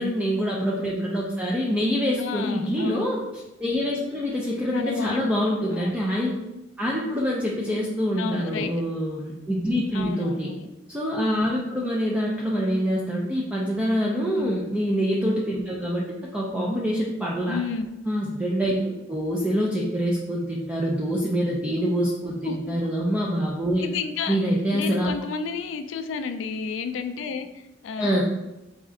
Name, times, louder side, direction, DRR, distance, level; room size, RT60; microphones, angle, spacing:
voice 1, 0.0-6.3 6.8-10.5 10.9-16.1 16.3-17.6 18.0-18.8 19.1-23.9 24.3-25.1 28.0-28.2, equal, 5° right, -4 dB, 0.4 m, -25 dB
voice 2, 2.2-3.1 4.7-6.0 8.2-8.7 9.9-10.7 14.4-14.7 17.5-17.9 22.4-22.8 23.8-24.4 24.7-28.2, left 5 dB, 75° left, 8 dB, 0.4 m, -32 dB
4.2 x 2.4 x 3.7 m, 0.98 s
head